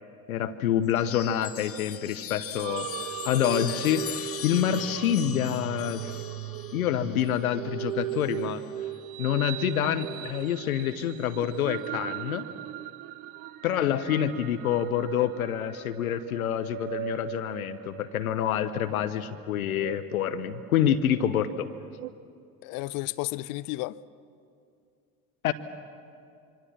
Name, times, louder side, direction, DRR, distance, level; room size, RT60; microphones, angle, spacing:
voice 1, 0.3-2.9 3.2-6.1 6.7-8.6 9.2-12.4 13.6-21.7 25.4-25.5, left 10 dB, 70° left, 1.1 m, -27 dB
Chime, 0.9-8.7 9.9-10.5, left 10 dB, 30° left, 1.1 m, -40 dB
sound 1, 2.6-22.1, right 14 dB, 50° right, 0.7 m, -39 dB
voice 2, 22.6-24.0, left 19 dB, 50° left, 0.7 m, -32 dB
25.5 x 25.5 x 7.3 m
figure-of-eight pair, 65°, 44 cm